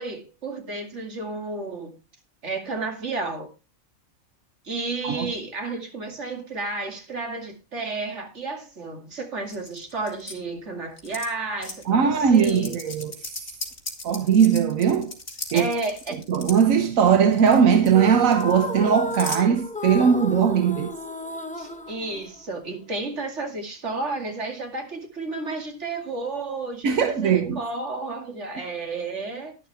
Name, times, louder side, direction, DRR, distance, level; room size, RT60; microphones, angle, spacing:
voice 1, 0.0-1.9 2.4-3.5 4.6-12.8 15.5-16.2 21.5-29.6, right 3 dB, 60° right, 2.6 m, -32 dB
sound 1, 9.5-10.3 11.0-11.3 11.6-11.8 12.3-16.6 17.1-17.6 17.8-19.4, left 3 dB, 45° left, 2.2 m, -37 dB
voice 2, 11.9-13.1 14.0-15.1 15.5-15.7 16.3-20.9 26.8-27.6, right 7 dB, 85° right, 1.4 m, -19 dB
sound 2, 17.9-22.7, left 1 dB, 10° left, 0.6 m, -33 dB
11.0 x 11.0 x 3.4 m
omnidirectional pair, 1.4 m